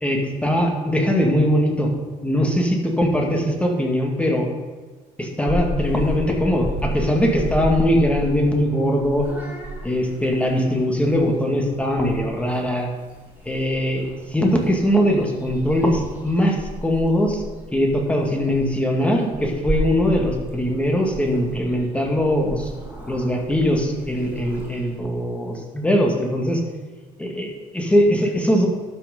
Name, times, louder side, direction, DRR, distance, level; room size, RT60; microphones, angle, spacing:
voice 1, 0.0-1.9 2.2-4.5 5.2-9.3 9.8-12.9 13.5-14.0 14.3-17.4 17.7-22.7 23.1-26.6 27.2-28.7, equal, 5° left, 1 dB, 2.0 m, -21 dB
Purr / Meow, 5.5-25.0, equal, 10° right, 3.6 m, -33 dB
12.0 x 6.1 x 5.3 m, 1.3 s
cardioid pair, 110°, 17 cm